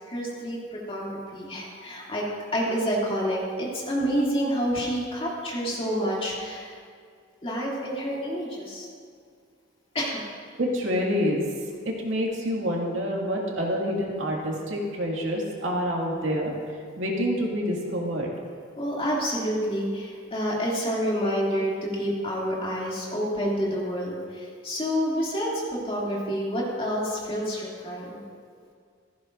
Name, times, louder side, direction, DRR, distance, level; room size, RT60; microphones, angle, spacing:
voice 1, 0.1-2.2 2.5-6.8 7.4-8.9 9.9-10.2 18.8-28.2, equal, 30° left, -5 dB, 2.7 m, -28 dB
voice 2, 10.6-11.4 11.9-16.5 17.0-18.3, equal, 80° right, -2 dB, 2.2 m, -27 dB
16.0 x 14.5 x 2.6 m, 2.2 s
head